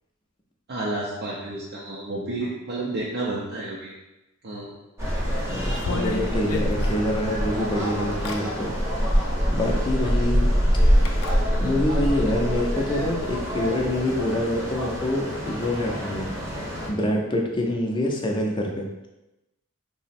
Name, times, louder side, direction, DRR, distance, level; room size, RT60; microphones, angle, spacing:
voice 1, 0.7-3.9 4.4-4.7 16.4-16.6, right 2 dB, 50° right, -5 dB, 0.5 m, -31 dB
sound 1, 5.0-16.9, equal, 10° right, 0.8 m, -25 dB
voice 2, 5.5-8.7 9.5-10.5 11.6-16.3 16.9-18.9, left 1 dB, 20° left, 0 dB, 0.5 m, -26 dB
sound 2, 5.7-7.5 8.0-8.4 9.7-9.8 11.1-11.4, left 3 dB, 80° left, 0.5 m, -31 dB
3.8 x 2.0 x 4.1 m, 0.97 s
head